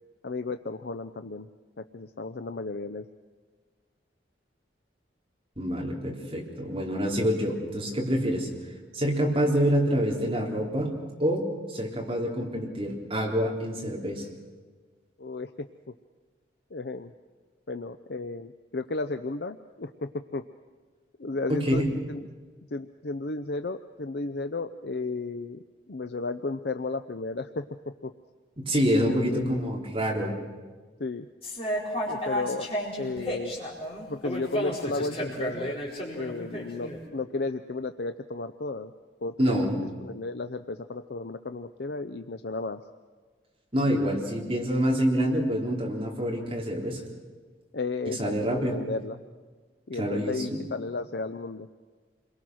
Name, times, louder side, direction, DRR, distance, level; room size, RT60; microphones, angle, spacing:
voice 1, 0.2-1.5 1.8-3.0 15.2-15.7 16.7-17.1 17.7-20.4 21.2-22.2 22.7-25.6 25.9-27.7 28.0-28.1 29.0-29.4 31.0-31.3 32.1-33.5 34.1-35.8 36.1-38.9 39.2-39.6 40.0-42.8 47.7-49.2 49.9-51.7, left 3 dB, 60° left, 9 dB, 0.6 m, -34 dB
voice 2, 5.6-8.5 8.9-10.9 11.2-14.3 21.5-22.0 28.6-30.3 39.4-39.8 43.7-47.0 48.1-48.8 49.9-50.6, equal, 30° right, -2 dB, 3.8 m, -27 dB
sound 1, 31.4-37.0, equal, 30° left, 4.8 m, -32 dB
28.5 x 22.0 x 6.3 m, 1.4 s
head